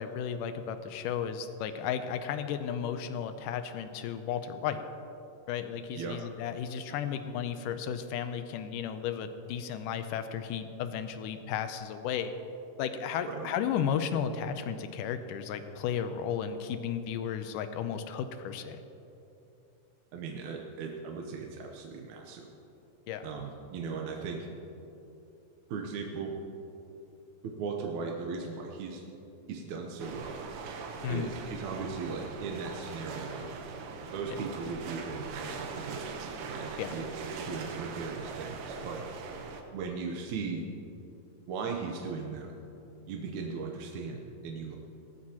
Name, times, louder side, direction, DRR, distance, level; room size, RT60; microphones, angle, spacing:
voice 1, 0.0-4.8 5.5-12.3 12.8-18.8 23.1-23.3 31.0-31.3 34.3-34.4 36.8-36.9, left 8 dB, 85° left, 9 dB, 2.2 m, -34 dB
voice 2, 20.1-22.5 23.2-24.5 25.7-26.4 27.4-29.0 29.5-30.4 31.1-33.5 34.1-36.2 36.5-39.1 39.7-40.6 41.5-42.5 43.1-44.8, right 5 dB, 70° right, 1 dB, 2.2 m, -38 dB
sound 1, 30.0-39.6, right 4 dB, 90° right, 2.7 m, -41 dB
18.5 x 14.0 x 2.9 m, 2.9 s
omnidirectional pair, 3.7 m